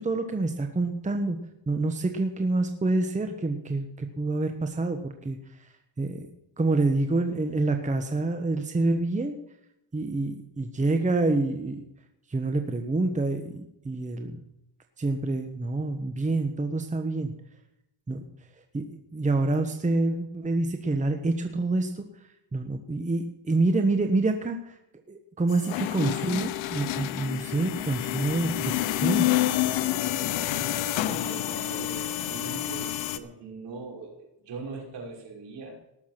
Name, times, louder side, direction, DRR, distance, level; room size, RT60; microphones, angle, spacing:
voice 1, 0.0-1.4 1.7-6.3 6.6-9.4 9.9-11.8 12.3-14.4 15.0-17.3 18.1-18.2 18.7-18.8 19.1-22.0 22.5-24.8 25.1-29.3, right 2 dB, 15° right, 5 dB, 1.3 m, -27 dB
sound 1, 25.5-33.2, left 14 dB, 75° left, 1.0 m, -28 dB
voice 2, 31.0-35.8, right 3 dB, 65° right, -1 dB, 6.0 m, -40 dB
18.5 x 7.2 x 5.9 m, 0.83 s
cardioid pair, 105°, 46 cm